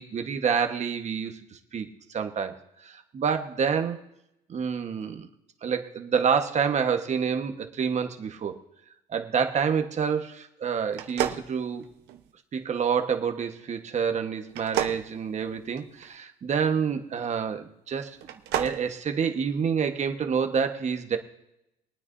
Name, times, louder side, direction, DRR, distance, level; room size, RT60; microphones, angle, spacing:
voice 1, 0.0-2.6 2.8-4.0 4.5-5.3 5.6-8.6 9.1-11.9 12.5-18.2 18.5-21.2, right 6 dB, 45° right, 6 dB, 1.3 m, -28 dB
sound 1, 10.9-12.3 14.5-16.1 18.1-18.8, right 11 dB, 85° right, 1.1 m, -31 dB
22.5 x 9.4 x 2.7 m, 0.83 s
cardioid pair, 110°, 17 cm